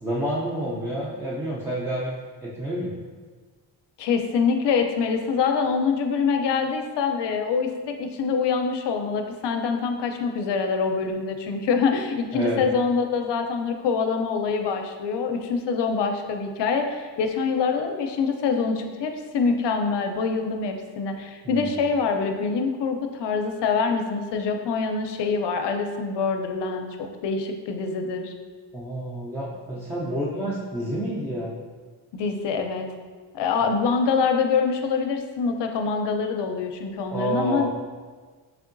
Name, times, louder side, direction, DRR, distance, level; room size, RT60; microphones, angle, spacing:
voice 1, 0.0-2.1 2.4-2.9 12.3-12.6 21.4-21.7 28.7-31.6 37.1-37.7, equal, 5° right, -7 dB, 0.4 m, -29 dB
voice 2, 4.0-28.3 32.1-32.9 33.3-37.7, left 5 dB, 65° left, 5 dB, 0.5 m, -25 dB
3.6 x 3.4 x 2.5 m, 1.4 s
cardioid pair, 110°, 45 cm